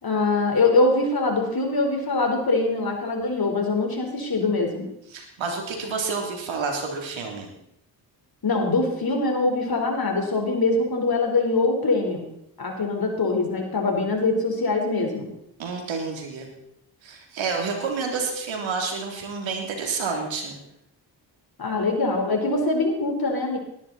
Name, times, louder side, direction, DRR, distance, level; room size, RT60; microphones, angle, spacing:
voice 1, 0.0-4.9 8.4-12.2 12.6-15.3 21.6-23.6, left 3 dB, 50° left, 2 dB, 4.6 m, -23 dB
voice 2, 5.1-7.5 15.6-16.5 17.0-20.6, right 4 dB, 80° right, 2 dB, 3.4 m, -29 dB
19.0 x 11.5 x 4.3 m, 0.77 s
supercardioid pair, 45°, 46 cm